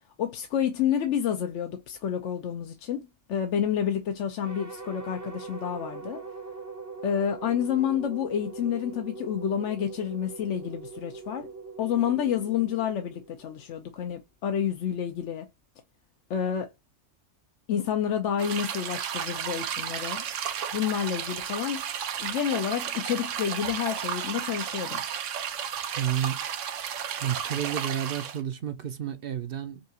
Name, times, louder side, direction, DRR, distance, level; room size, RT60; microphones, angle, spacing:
voice 1, 0.2-6.2 7.0-11.5 11.8-15.5 16.3-16.7 17.7-20.2 20.7-21.9 22.2-25.0, left 9 dB, 70° left, 1.0 m, -29 dB
sound 1, 4.4-13.7, right 4 dB, 15° right, 0.7 m, -42 dB
sound 2, 18.4-28.4, right 8 dB, 80° right, 1.0 m, -33 dB
voice 2, 25.9-26.4 27.2-29.8, right 9 dB, 55° right, 0.7 m, -31 dB
5.4 x 2.4 x 2.8 m
omnidirectional pair, 1.3 m